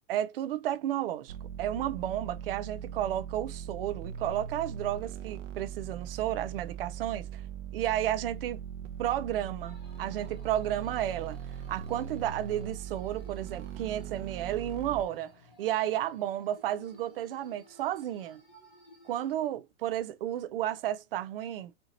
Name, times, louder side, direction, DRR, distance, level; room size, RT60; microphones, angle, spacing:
voice 1, 0.1-7.4 7.7-8.6 9.0-11.4 11.7-15.3 15.6-18.4 19.0-21.7, right 12 dB, 50° right, 0.6 m, -32 dB
sound 1, 1.3-15.0, right 9 dB, 90° right, 0.8 m, -40 dB
sound 2, 9.6-19.3, left 1 dB, 10° left, 0.3 m, -57 dB
4.4 x 2.9 x 3.9 m
supercardioid pair, 170°, 36 cm